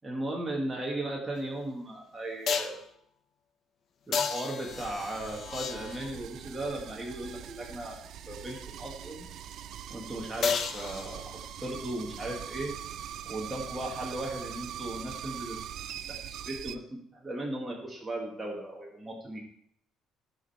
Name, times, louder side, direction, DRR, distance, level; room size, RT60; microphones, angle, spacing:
voice 1, 0.0-2.8 4.1-8.0 8.3-9.3 9.9-12.7 13.3-15.6 16.1-19.4, right 1 dB, 10° right, -3 dB, 1.9 m, -37 dB
sound 1, 1.4-1.5 2.5-2.9 4.1-6.3 10.4-11.5 15.4-15.5, left 6 dB, 45° left, 0.8 m, -33 dB
sound 2, 4.7-16.8, right 10 dB, 60° right, 0.5 m, -42 dB
15.5 x 5.3 x 4.3 m, 0.67 s
cardioid pair, 150°, 0 cm